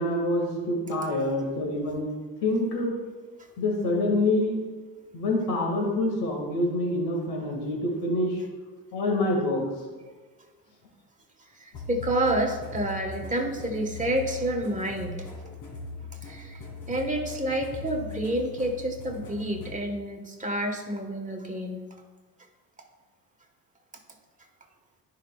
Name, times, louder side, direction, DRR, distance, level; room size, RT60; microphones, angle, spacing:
voice 1, 0.0-2.1 2.4-2.9 3.6-4.6 5.1-8.4 8.9-9.6, left 1 dB, 90° left, 0 dB, 2.3 m, -26 dB
voice 2, 11.6-15.3 16.2-21.8, right 1 dB, 20° right, 2 dB, 1.5 m, -29 dB
sound 1, 11.7-19.8, left 4 dB, 60° left, 2.6 m, -40 dB
14.5 x 5.6 x 2.4 m, 1.3 s
supercardioid pair, 80°, 38 cm